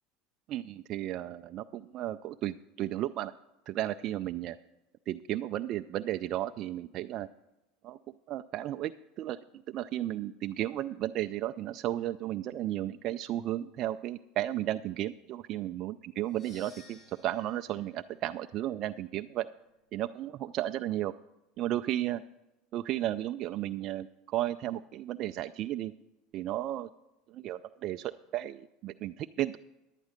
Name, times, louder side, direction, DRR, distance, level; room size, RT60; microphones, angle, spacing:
voice 1, 0.5-3.3 3.7-4.6 5.1-7.3 7.8-8.0 8.3-8.9 9.2-19.5 19.9-21.1 21.6-22.2 22.7-25.9 26.3-26.9 27.3-29.6, right 13 dB, 55° right, 8 dB, 0.3 m, -34 dB
sound 1, 16.2-20.6, left 2 dB, 50° left, 4.6 m, -60 dB
10.5 x 9.1 x 5.0 m, 0.95 s
supercardioid pair, 100°, 0 cm